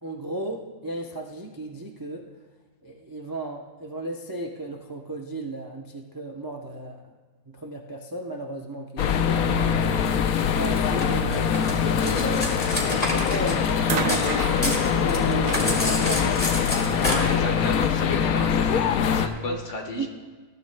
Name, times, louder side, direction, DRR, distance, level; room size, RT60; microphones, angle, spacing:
voice 1, 0.0-2.3 2.8-7.0 7.5-9.7 10.5-12.5 12.9-16.5 19.5-19.6 19.9-20.1, right 2 dB, 25° right, 2 dB, 0.5 m, -34 dB
sound 1, 9.0-19.3, left 7 dB, 70° left, 1.1 m, -23 dB
Cutlery silverware, 11.0-14.3 14.6-17.2, left 1 dB, 25° left, 2.2 m, -29 dB
sound 2, 13.8-17.1 18.1-18.2, right 7 dB, 65° right, 1.0 m, -34 dB
voice 2, 17.0-20.1, left 3 dB, 50° left, 3 dB, 1.7 m, -33 dB
20.5 x 13.0 x 2.2 m, 1.4 s
omnidirectional pair, 1.6 m